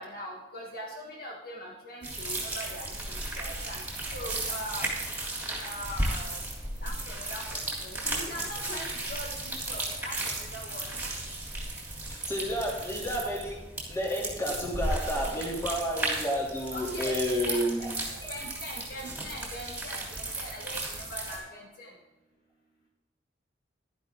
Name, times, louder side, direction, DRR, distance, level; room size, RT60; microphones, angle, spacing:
voice 1, 0.0-3.8 4.1-4.9 5.6-6.3 6.8-11.0 16.7-17.1 17.4-17.6 18.3-22.0, equal, 50° left, -2 dB, 2.0 m, -41 dB
sound 1, 2.0-21.4, right 2 dB, 10° right, 3.0 m, -35 dB
voice 2, 12.3-13.6 13.9-17.9 21.3-21.4, equal, 15° left, -3 dB, 2.8 m, -30 dB
12.0 x 10.5 x 3.8 m, 1.1 s
head